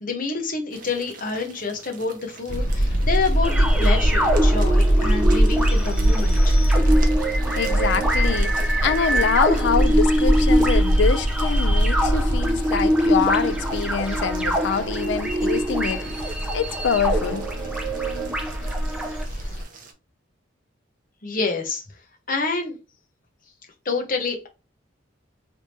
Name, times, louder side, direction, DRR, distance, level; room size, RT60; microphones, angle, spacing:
voice 1, 0.0-6.6 21.2-21.8 22.3-22.8 23.8-24.5, left 4 dB, 45° left, 0.9 m, -27 dB
sound 1, 0.7-19.9, right 4 dB, 45° right, 0.7 m, -44 dB
sound 2, 2.5-19.6, equal, 85° left, 1.7 m, -22 dB
sound 3, 3.4-19.2, equal, 5° right, 0.5 m, -25 dB
voice 2, 7.6-17.5, left 6 dB, 65° left, 0.4 m, -25 dB
3.4 x 2.8 x 3.0 m
head